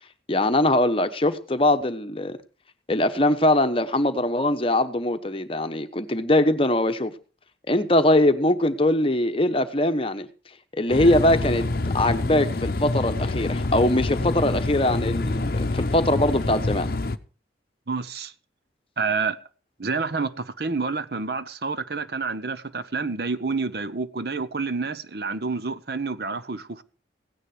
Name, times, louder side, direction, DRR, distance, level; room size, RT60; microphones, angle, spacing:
voice 1, 0.3-2.4 2.9-7.1 7.7-10.3 10.8-11.7 11.9-16.9, left 1 dB, 30° left, 1.0 m, -22 dB
sound 1, 10.9-17.2, left 2 dB, 50° left, 0.7 m, -26 dB
voice 2, 17.9-18.3 19.0-19.4 19.8-26.8, right 4 dB, 55° right, 0.9 m, -28 dB
16.5 x 9.9 x 4.9 m
head